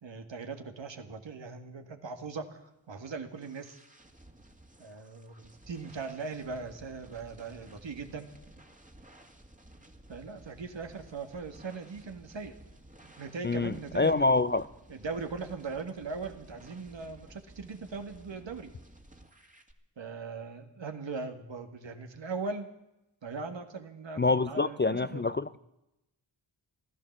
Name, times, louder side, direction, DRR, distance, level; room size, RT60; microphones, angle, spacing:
voice 1, 0.0-3.8 4.8-8.3 10.1-12.6 13.0-14.3 14.9-18.7 20.0-22.7 23.2-25.4, right 4 dB, 65° right, 1.9 m, -40 dB
sound 1, 2.7-19.7, right 1 dB, 15° right, 2.3 m, -55 dB
voice 2, 13.4-14.7 24.2-25.6, left 3 dB, 25° left, 0.5 m, -26 dB
15.5 x 12.5 x 7.3 m
cardioid pair, 45°, 48 cm